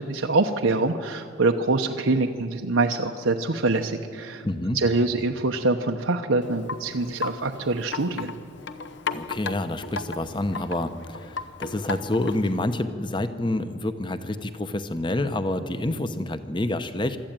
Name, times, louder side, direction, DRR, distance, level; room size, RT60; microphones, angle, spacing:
voice 1, 0.0-4.4 4.7-8.3, right 3 dB, 85° right, 3 dB, 0.9 m, -24 dB
voice 2, 4.4-4.8 9.1-17.2, left 1 dB, 25° left, 10 dB, 0.9 m, -28 dB
Wind chime, 6.4-12.6, left 4 dB, 65° left, 0.9 m, -36 dB
24.0 x 13.5 x 9.0 m, 2.2 s
head